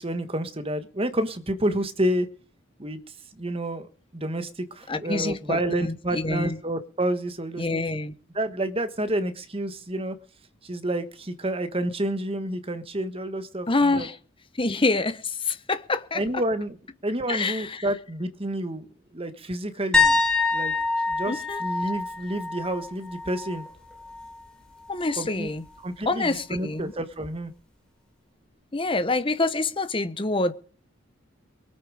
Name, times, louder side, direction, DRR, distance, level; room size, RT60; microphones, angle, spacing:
voice 1, 0.0-2.3 2.8-3.0 3.4-7.8 8.3-10.1 10.6-14.1 16.1-16.8 17.0-18.8 19.1-20.2 20.5-20.7 21.1-23.6 25.2-25.5 25.8-27.5, right 1 dB, 30° right, 1.4 m, -29 dB
voice 2, 4.9-6.6 7.6-8.1 13.7-14.2 14.6-16.2 17.3-17.9 21.3-21.6 24.9-25.6 26.1-26.9 28.7-30.5, left 3 dB, 25° left, 1.0 m, -26 dB
sound 1, 19.9-23.7 24.0-24.4 27.2-27.3, left 4 dB, 5° left, 3.3 m, -25 dB
23.0 x 8.7 x 5.0 m
head